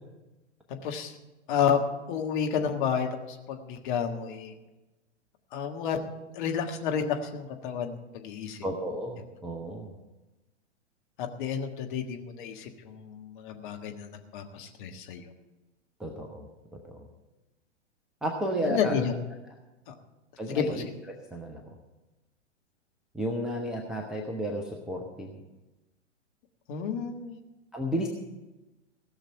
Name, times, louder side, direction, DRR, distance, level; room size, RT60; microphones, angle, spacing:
voice 1, 0.7-1.1 1.5-1.8 2.1-4.5 5.5-6.0 6.3-8.6 11.2-15.3 18.6-19.1 19.9-20.0 20.5-20.8 26.7-27.4, left 7 dB, 40° left, 4 dB, 1.6 m, -31 dB
voice 2, 8.6-9.9 16.0-17.1 18.2-19.1 20.4-21.7 23.1-25.3 27.7-28.1, equal, ahead, 1 dB, 0.4 m, -33 dB
16.5 x 6.4 x 7.5 m, 1.1 s
figure-of-eight pair, 105°, 36 cm